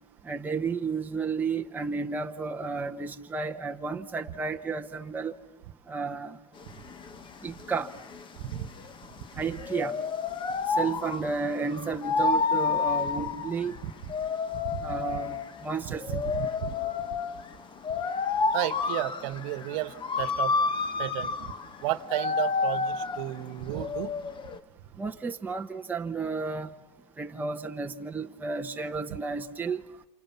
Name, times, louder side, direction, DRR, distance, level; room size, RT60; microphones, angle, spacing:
voice 1, 0.2-5.3 5.9-6.4 7.4-7.9 9.4-10.0 10.8-13.8 14.8-15.4 15.6-16.3 25.0-26.7 27.2-29.8, right 4 dB, 10° right, 1.0 m, -32 dB
sound 1, 6.6-24.6, left 4 dB, 25° left, 1.2 m, -30 dB
voice 2, 14.6-15.0 16.1-16.8 18.5-20.5 21.0-21.5 21.8-24.1, right 14 dB, 50° right, 1.4 m, -33 dB
29.0 x 27.5 x 7.3 m
hypercardioid pair, 115°, 21 cm